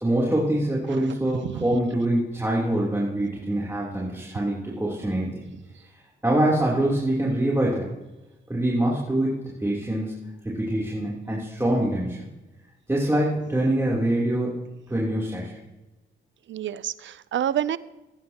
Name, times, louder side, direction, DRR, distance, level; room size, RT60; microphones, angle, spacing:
voice 1, 0.0-5.4 5.9-7.9 8.5-12.3 12.9-14.6 14.9-15.6, right 1 dB, 10° right, -5 dB, 3.3 m, -25 dB
voice 2, 16.5-17.8, right 10 dB, 60° right, 18 dB, 0.6 m, -28 dB
18.5 x 9.5 x 2.9 m, 1.0 s
supercardioid pair, 55°, 21 cm